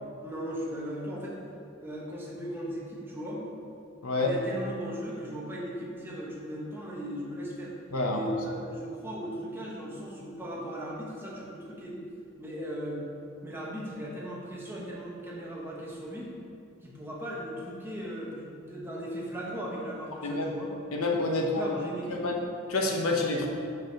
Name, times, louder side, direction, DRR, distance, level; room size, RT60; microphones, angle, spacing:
voice 1, 0.2-1.4 1.8-3.5 4.2-7.7 8.1-12.0 12.4-13.1 13.4-16.3 16.8-20.7 21.4-22.3, equal, 10° right, -4 dB, 1.1 m, -37 dB
voice 2, 20.9-21.7 22.1-22.4 22.7-23.5, left 2 dB, 90° left, 1 dB, 0.9 m, -28 dB
5.0 x 4.8 x 5.9 m, 2.5 s
head